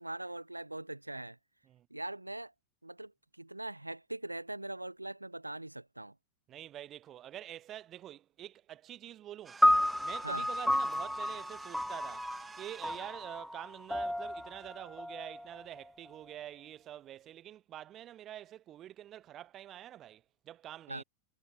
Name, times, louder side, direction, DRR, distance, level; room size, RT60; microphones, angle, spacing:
voice 1, 0.0-1.4 1.9-2.5 2.8-6.1 10.2-10.5 20.9-21.0, right 1 dB, 85° right, 0.6 m, -41 dB
voice 2, 6.5-9.7 10.0-12.3 12.6-21.0, right 12 dB, 30° right, 2.0 m, -47 dB
sound 1, 9.4-13.2, right 5 dB, 15° right, 1.9 m, -51 dB
sound 2, 9.6-16.1, left 1 dB, ahead, 0.3 m, -32 dB
figure-of-eight pair, 90°, 0 cm